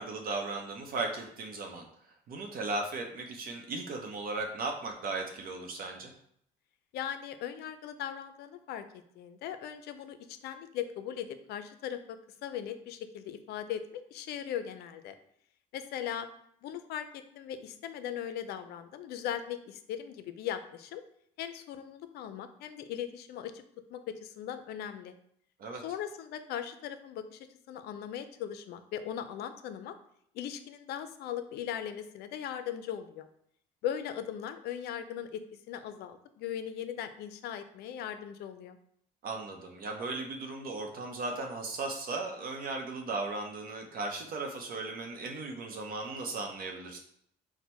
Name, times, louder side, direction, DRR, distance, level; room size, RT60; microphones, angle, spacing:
voice 1, 0.0-1.9 2.3-6.1 25.6-25.8 39.2-47.0, right 3 dB, 60° right, 2 dB, 0.7 m, -36 dB
voice 2, 6.9-8.8 9.2-12.2 12.4-15.1 15.7-16.3 16.6-21.0 21.4-23.6 23.9-25.2 25.8-29.9 30.3-33.3 33.8-38.8, left 9 dB, 70° left, 10 dB, 0.4 m, -39 dB
4.3 x 2.1 x 4.2 m, 0.68 s
cardioid pair, 110°, 17 cm